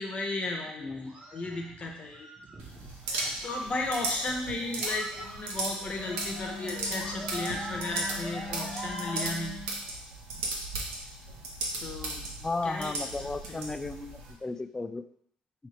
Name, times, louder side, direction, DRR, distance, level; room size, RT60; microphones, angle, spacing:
voice 1, 0.0-2.3 2.6-9.6 11.3-11.4 11.8-12.3 12.6-13.7, left 2 dB, 35° left, 1 dB, 0.9 m, -35 dB
voice 2, 0.8-1.2 12.4-15.0, left 3 dB, 15° left, 9 dB, 0.3 m, -34 dB
sound 1, 0.8-9.3, right 2 dB, 35° right, 1.0 m, -44 dB
sound 2, 2.6-14.3, right 2 dB, 70° right, 0.8 m, -37 dB
Wind instrument woodwind instrument, 5.9-9.8, left 5 dB, 80° left, 0.6 m, -42 dB
4.8 x 2.8 x 3.2 m, 0.71 s
figure-of-eight pair, 50°, 4 cm